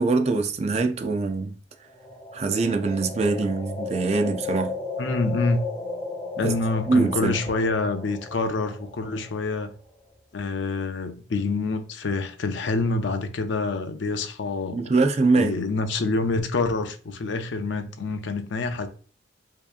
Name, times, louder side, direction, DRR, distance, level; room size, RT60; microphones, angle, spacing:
voice 1, 0.0-1.5 2.3-4.8 6.4-6.5 6.9-7.3 14.7-15.6, right 3 dB, 35° right, 0.4 m, -23 dB
sound 1, 1.9-9.9, left 3 dB, 15° left, 1.1 m, -35 dB
voice 2, 5.0-5.6 6.4-9.7 10.3-14.8 15.3-18.9, left 3 dB, 65° left, 0.5 m, -26 dB
4.7 x 2.8 x 2.4 m
head